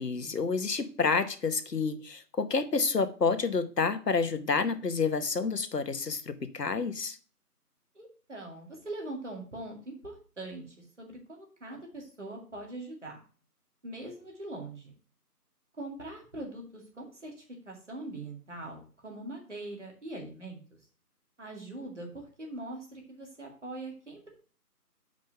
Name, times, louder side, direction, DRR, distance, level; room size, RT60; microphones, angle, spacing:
voice 1, 0.0-7.2, left 4 dB, 80° left, 1.1 m, -29 dB
voice 2, 7.9-13.2 13.8-14.9 15.8-17.3 17.7-20.8 21.4-24.3, right 2 dB, 45° right, 2.3 m, -42 dB
5.3 x 5.2 x 6.4 m
figure-of-eight pair, 175°, 48 cm